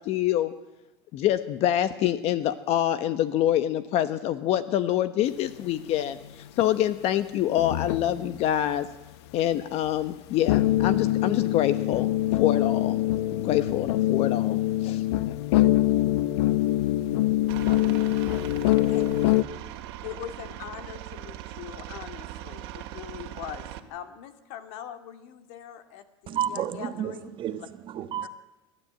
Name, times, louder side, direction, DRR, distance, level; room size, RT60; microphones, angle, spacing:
voice 1, 0.0-0.5 1.1-6.2 6.6-8.9 9.3-13.0 13.3-15.0, left 12 dB, 50° left, 1.1 m, -26 dB
sound 1, 5.5-6.5 7.5-8.4 9.9-10.0 10.5-19.4, left 15 dB, 85° left, 1.0 m, -24 dB
Aircraft, 17.5-23.8, right 13 dB, 80° right, 2.0 m, -40 dB
voice 2, 20.0-27.3 28.2-28.3, left 10 dB, 70° left, 2.3 m, -42 dB
voice 3, 26.3-28.3, right 10 dB, 40° right, 1.4 m, -31 dB
29.5 x 12.5 x 8.8 m
supercardioid pair, 130°, 13 cm